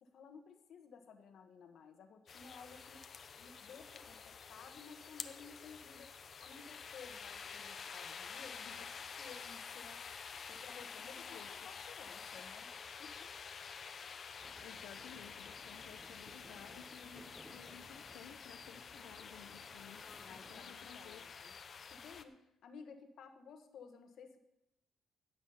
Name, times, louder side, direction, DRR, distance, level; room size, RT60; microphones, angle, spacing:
voice 1, 0.0-3.0 3.3-6.1 6.4-10.0 10.5-12.7 13.0-13.3 20.1-21.5 21.9-24.4, left 6 dB, 70° left, 6 dB, 1.4 m, -55 dB
sound 1, 2.3-22.2, left 6 dB, 50° left, 0.8 m, -49 dB
voice 2, 10.9-11.8 14.6-20.0 20.3-21.3, left 9 dB, 90° left, 5 dB, 0.6 m, -56 dB
sound 2, 14.4-20.6, equal, ahead, 1.1 m, -60 dB
16.5 x 6.2 x 5.6 m, 0.89 s
cardioid pair, 90°, 0 cm